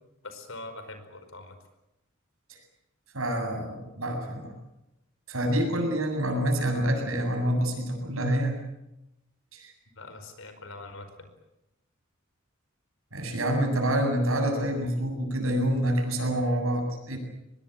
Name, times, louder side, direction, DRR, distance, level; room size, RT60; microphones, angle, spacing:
voice 1, 0.2-1.6 9.9-11.3, left 2 dB, 65° left, 8 dB, 5.0 m, -43 dB
voice 2, 3.1-4.5 5.3-8.6 9.5-9.7 13.1-17.2, right 1 dB, 80° right, 3 dB, 7.8 m, -27 dB
24.0 x 21.0 x 9.3 m, 0.90 s
head